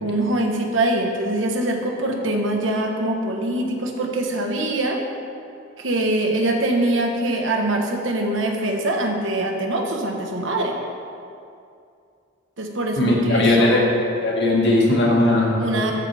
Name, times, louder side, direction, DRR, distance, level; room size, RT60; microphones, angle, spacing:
voice 1, 0.0-5.0 5.8-10.7 12.6-13.9 15.6-15.9, right 1 dB, 80° right, 2 dB, 1.3 m, -23 dB
voice 2, 13.0-13.8 14.2-15.5, left 2 dB, 60° left, -3 dB, 2.0 m, -18 dB
13.0 x 8.9 x 3.5 m, 2.4 s
head